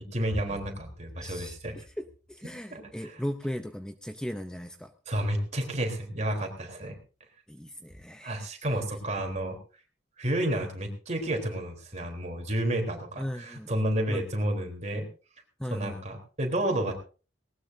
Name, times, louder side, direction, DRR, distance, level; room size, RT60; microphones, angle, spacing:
voice 1, 0.0-1.8 2.4-3.2 5.1-7.0 8.2-9.6 10.2-15.1 15.7-16.9, right 1 dB, 40° right, 3 dB, 3.8 m, -31 dB
voice 2, 1.2-1.6 2.0-2.1 2.3-4.9 7.5-8.5 13.2-13.7 14.1-14.2 15.6-16.0, equal, 5° left, 7 dB, 0.7 m, -37 dB
19.0 x 19.0 x 2.7 m, 0.37 s
head